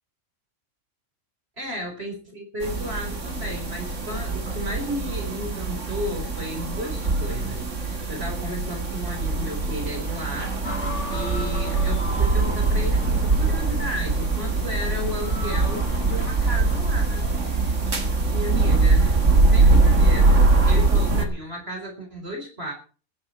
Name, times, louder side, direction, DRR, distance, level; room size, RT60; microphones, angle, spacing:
voice 1, 1.6-10.6 11.1-17.3 18.3-19.2 19.5-22.7, equal, 50° right, 3 dB, 4.7 m, -34 dB
sound 1, 2.6-21.3, right 3 dB, 70° right, 2.5 m, -22 dB
sound 2, 10.6-18.3, left 1 dB, 60° left, 2.7 m, -37 dB
16.5 x 13.0 x 4.5 m, 0.37 s
omnidirectional pair, 1.3 m